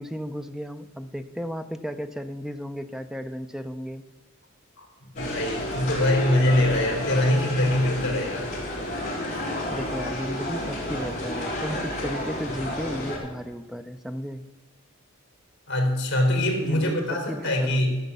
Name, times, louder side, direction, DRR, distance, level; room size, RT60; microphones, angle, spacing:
voice 1, 0.0-4.0 9.7-14.4 16.6-17.9, equal, ahead, 10 dB, 0.4 m, -34 dB
voice 2, 5.2-8.5 15.7-17.9, left 1 dB, 55° left, 2 dB, 3.1 m, -23 dB
sound 1, 5.2-13.2, left 1 dB, 35° left, 4.1 m, -31 dB
12.0 x 7.2 x 6.7 m, 1.2 s
head